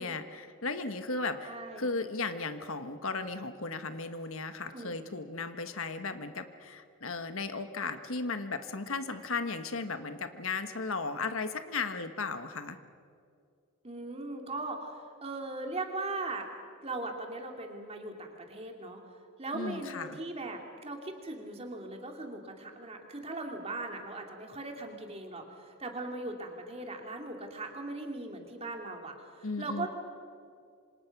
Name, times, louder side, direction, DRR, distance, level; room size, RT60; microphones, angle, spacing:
voice 1, 0.0-12.8 19.5-20.2 29.4-29.9, left 3 dB, 65° left, 9 dB, 1.3 m, -36 dB
voice 2, 1.4-1.9 4.7-5.0 13.8-16.5 16.8-19.0 19.4-29.9, right 2 dB, 25° right, 3 dB, 2.7 m, -39 dB
27.5 x 26.0 x 6.0 m, 2.3 s
head